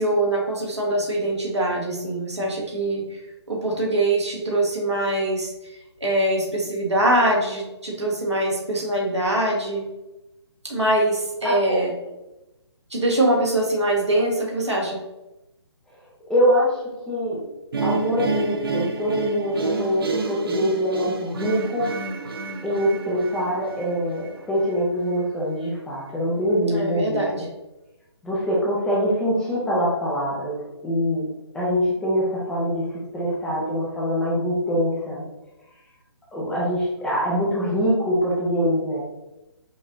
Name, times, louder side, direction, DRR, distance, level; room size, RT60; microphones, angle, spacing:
voice 1, 0.0-3.2 3.5-5.7 6.0-9.8 10.6-11.9 12.9-15.0 26.7-27.4, right 1 dB, 80° right, -2 dB, 1.3 m, -23 dB
voice 2, 11.4-11.8 16.3-17.4 17.8-21.9 22.6-27.2 28.2-30.5 30.8-31.3 31.5-32.9 33.1-35.2 36.3-39.0, equal, 5° left, -6 dB, 0.5 m, -24 dB
sound 1, 17.7-24.8, right 4 dB, 55° right, 0.5 m, -30 dB
5.2 x 2.6 x 2.5 m, 0.96 s
figure-of-eight pair, 140°, 14 cm